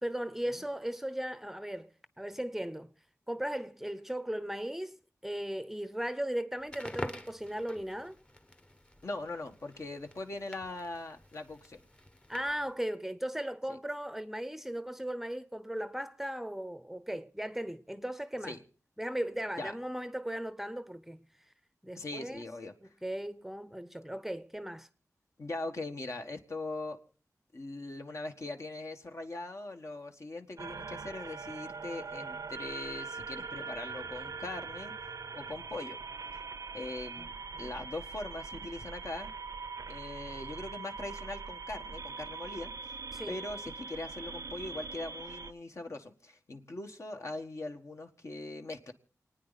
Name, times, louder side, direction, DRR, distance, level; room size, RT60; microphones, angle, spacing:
voice 1, 0.0-2.9 3.3-4.9 5.2-8.2 12.3-18.5 19.0-21.3 21.8-22.4 23.0-24.9 37.5-37.7 43.1-43.4, right 1 dB, 5° right, 0.7 m, -37 dB
Crackle, 6.6-12.7, left 1 dB, 20° left, 1.0 m, -47 dB
voice 2, 9.0-11.8 13.7-13.8 18.4-18.6 19.6-19.7 21.9-22.9 25.4-27.0 27.5-34.9 35.3-36.0 36.7-39.3 39.9-43.0 43.3-48.9, left 2 dB, 55° left, 1.6 m, -41 dB
sound 1, 30.6-45.5, right 4 dB, 80° right, 0.6 m, -42 dB
28.5 x 9.6 x 4.1 m
wide cardioid pair, 75°, 6 cm